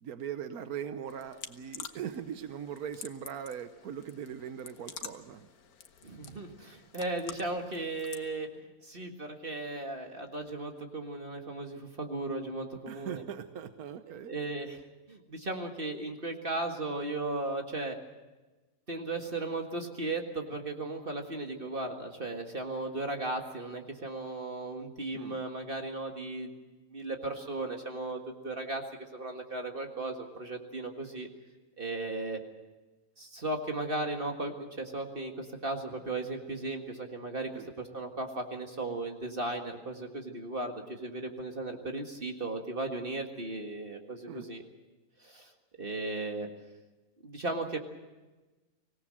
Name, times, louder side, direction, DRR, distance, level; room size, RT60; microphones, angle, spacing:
voice 1, 0.0-5.5 12.9-14.3 25.1-25.4 37.5-37.7 44.3-44.5, right 8 dB, 85° right, 9 dB, 1.4 m, -40 dB
sound 1, 1.1-8.3, left 7 dB, 85° left, 1.6 m, -48 dB
voice 2, 6.0-8.5 8.8-13.2 14.2-14.8 15.1-18.0 18.9-26.5 26.9-28.8 29.1-31.3 31.8-32.4 33.2-37.5 37.8-44.6 45.2-45.5 45.8-46.5 47.2-47.8, right 2 dB, 40° right, 3 dB, 2.0 m, -36 dB
24.5 x 18.0 x 7.6 m, 1.2 s
omnidirectional pair, 1.5 m